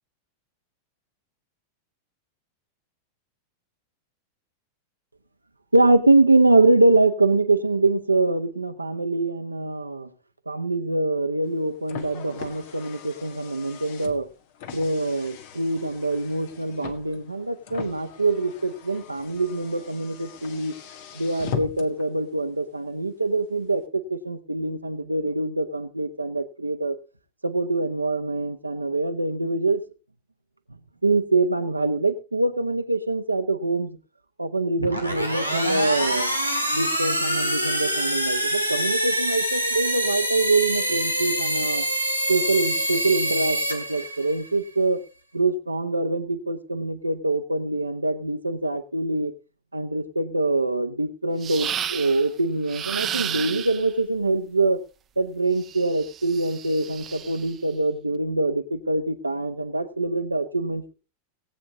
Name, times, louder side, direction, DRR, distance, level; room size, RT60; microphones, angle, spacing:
voice 1, 5.7-10.1 10.5-14.3 14.7-20.7 21.1-26.9 27.4-29.8 31.0-34.0 34.4-36.3 36.7-41.9 42.3-45.0 45.3-49.3 49.7-54.8 55.2-60.9, right 2 dB, 85° right, 7 dB, 1.0 m, -24 dB
Car, 11.4-22.1, left 7 dB, 50° left, 1.6 m, -40 dB
sound 1, 34.8-44.5, equal, 90° left, 1.8 m, -25 dB
sound 2, 51.4-52.3 52.7-53.9 55.6-57.5, right 9 dB, 25° right, 0.8 m, -32 dB
19.0 x 8.6 x 3.6 m, 0.32 s
figure-of-eight pair, 90°, 0 cm